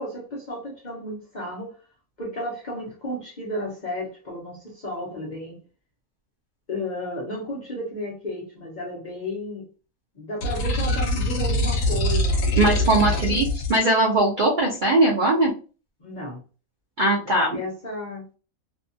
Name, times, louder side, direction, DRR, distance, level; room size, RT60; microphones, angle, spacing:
voice 1, 0.0-1.8 2.2-5.6 6.7-9.6 10.1-13.4 16.0-16.4 17.2-18.2, left 1 dB, 45° left, -2 dB, 0.7 m, -33 dB
sound 1, 10.4-13.8, left 1 dB, 70° left, 1.0 m, -23 dB
voice 2, 12.6-15.5 17.0-17.5, right 2 dB, 55° right, -3 dB, 0.5 m, -20 dB
2.7 x 2.3 x 2.6 m, 0.35 s
omnidirectional pair, 1.5 m